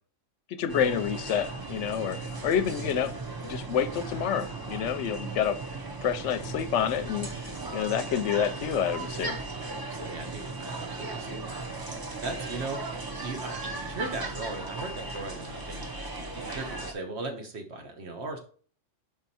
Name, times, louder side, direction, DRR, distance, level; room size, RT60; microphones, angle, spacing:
voice 1, 0.5-3.1 3.4-5.6 6.0-7.3 7.7-9.4, left 8 dB, 70° left, 11 dB, 0.8 m, -28 dB
sound 1, 0.7-16.9, right 3 dB, 25° right, 0.5 m, -37 dB
voice 2, 9.9-18.4, right 3 dB, 60° right, 4 dB, 1.3 m, -38 dB
5.3 x 4.6 x 4.1 m, 0.43 s
omnidirectional pair, 1.3 m